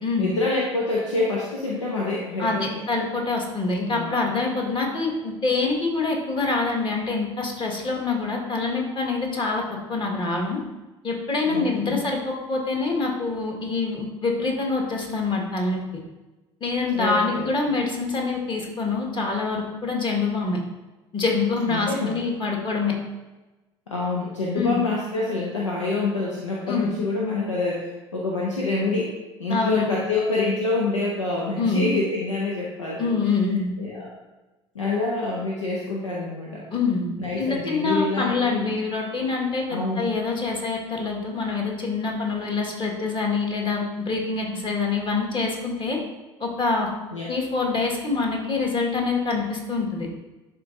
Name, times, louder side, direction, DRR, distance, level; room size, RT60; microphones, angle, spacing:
voice 1, 0.2-2.7 3.8-4.2 11.5-12.0 16.9-17.5 21.7-22.2 23.9-33.1 33.8-34.1 34.7-36.7 37.2-38.7 39.7-40.1 47.1-47.3, left 3 dB, 90° left, -3 dB, 0.7 m, -26 dB
voice 2, 2.4-9.6 9.9-10.6 11.0-15.8 16.6-20.6 21.1-22.9 24.6-24.8 26.7-26.9 29.5-29.9 31.6-31.9 33.0-33.7 36.7-37.1 37.4-46.0 46.4-46.9 47.3-50.1, left 4 dB, 30° left, 0 dB, 1.7 m, -25 dB
11.0 x 3.8 x 2.7 m, 1.1 s
figure-of-eight pair, 65°, 15 cm